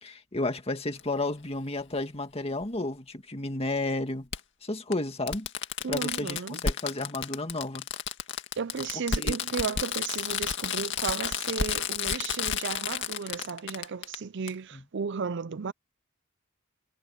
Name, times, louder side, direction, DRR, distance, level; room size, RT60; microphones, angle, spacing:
voice 1, 0.0-4.3 4.6-5.5 5.9-7.9 9.2-9.4 14.7-14.8, left 2 dB, 30° left, 2.0 m, -32 dB
Fireworks, 1.0-1.1 2.6-2.7 4.3-4.4 4.9-5.0 5.3-14.2 14.5-14.6, left 7 dB, 60° left, 2.1 m, -31 dB
voice 2, 5.8-6.6 8.6-15.7, right 5 dB, 60° right, 0.5 m, -34 dB
head